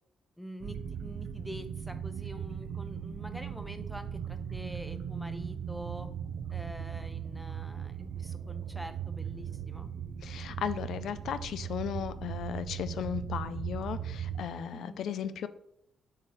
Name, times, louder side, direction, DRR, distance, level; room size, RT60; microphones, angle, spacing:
voice 1, 0.4-6.1 6.5-9.9 14.7-15.0, equal, ahead, 8 dB, 0.6 m, -45 dB
sound 1, 0.6-14.5, right 8 dB, 65° right, 0.4 m, -38 dB
voice 2, 10.2-15.5, left 8 dB, 70° left, 13 dB, 0.3 m, -36 dB
7.4 x 4.6 x 3.0 m, 0.74 s
cardioid pair, 115°, 0 cm